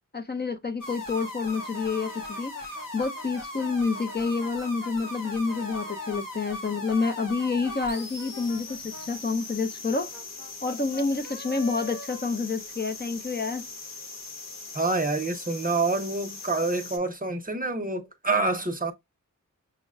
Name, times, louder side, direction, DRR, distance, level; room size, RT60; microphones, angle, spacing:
voice 1, 0.1-10.1 10.6-13.6, left 4 dB, 30° left, 0.5 m, -29 dB
sound 1, 0.8-17.0, left 2 dB, 85° left, 0.8 m, -39 dB
Brass instrument, 1.1-6.2 6.7-13.0, left 2 dB, 55° left, 0.9 m, -45 dB
voice 2, 14.7-18.9, right 3 dB, 25° right, 0.6 m, -27 dB
6.1 x 2.1 x 2.3 m
wide cardioid pair, 90°, 32 cm